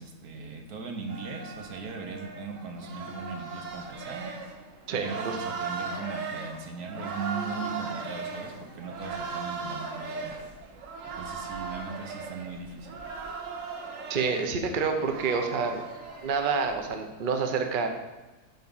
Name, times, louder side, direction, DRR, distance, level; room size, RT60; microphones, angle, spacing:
voice 1, 0.0-4.3 4.9-10.4 11.2-13.0, right 4 dB, 75° right, 4 dB, 1.6 m, -39 dB
sound 1, 1.1-16.9, right 4 dB, 60° right, 1.3 m, -38 dB
voice 2, 4.9-5.4 14.1-15.8 16.2-17.9, right 5 dB, 40° right, 5 dB, 0.8 m, -28 dB
9.4 x 3.7 x 7.1 m, 1.2 s
omnidirectional pair, 1.6 m